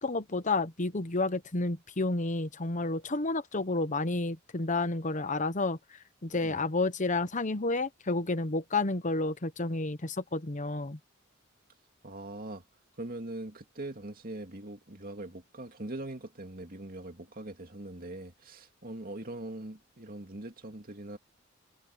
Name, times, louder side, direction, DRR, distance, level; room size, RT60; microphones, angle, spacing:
voice 1, 0.0-11.0, left 2 dB, 40° left, 1.1 m, -30 dB
voice 2, 12.0-12.6 13.0-21.2, right 2 dB, 45° right, 2.5 m, -42 dB
head